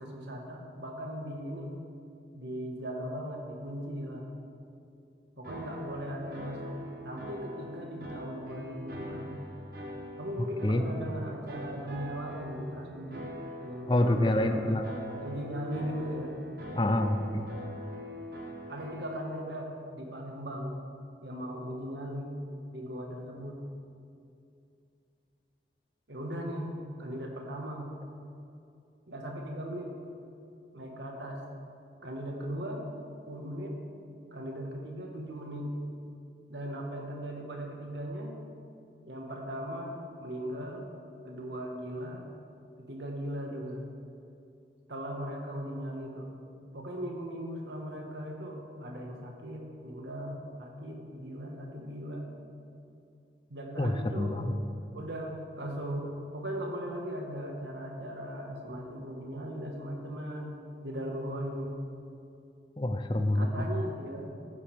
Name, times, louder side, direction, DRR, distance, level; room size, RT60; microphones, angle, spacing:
voice 1, 0.0-1.7 2.3-4.3 5.4-6.8 7.0-9.4 10.2-13.3 13.6-16.4 18.7-20.7 21.2-22.4 22.7-23.6 26.1-26.7 27.0-27.9 29.1-29.9 30.7-31.4 32.0-32.9 33.2-33.8 34.3-35.7 36.5-38.4 39.0-40.9 41.2-42.3 42.8-43.8 44.9-46.3 46.7-52.3 53.5-54.3 54.9-60.6 60.8-61.7 63.3-64.3, equal, 90° right, 1 dB, 1.5 m, -38 dB
sound 1, 5.4-19.2, left 1 dB, 60° right, 1.1 m, -43 dB
voice 2, 13.9-14.9 16.7-17.5 53.8-54.5 62.8-63.7, left 1 dB, 25° left, 7 dB, 0.6 m, -27 dB
14.5 x 8.7 x 3.5 m, 2.5 s
head